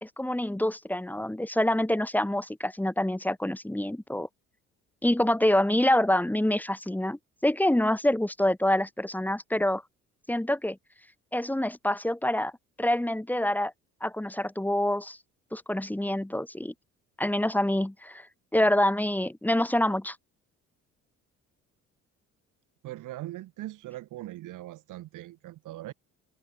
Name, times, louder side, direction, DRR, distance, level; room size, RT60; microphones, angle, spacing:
voice 1, 0.0-4.3 5.0-9.8 10.3-10.8 11.3-12.5 12.8-13.7 14.0-15.2 15.5-16.7 17.2-18.3 18.5-20.2, left 1 dB, 5° left, 1.6 m, -26 dB
voice 2, 22.8-25.9, right 15 dB, 75° right, 3.6 m, -40 dB
open air
supercardioid pair, 75°, 31 cm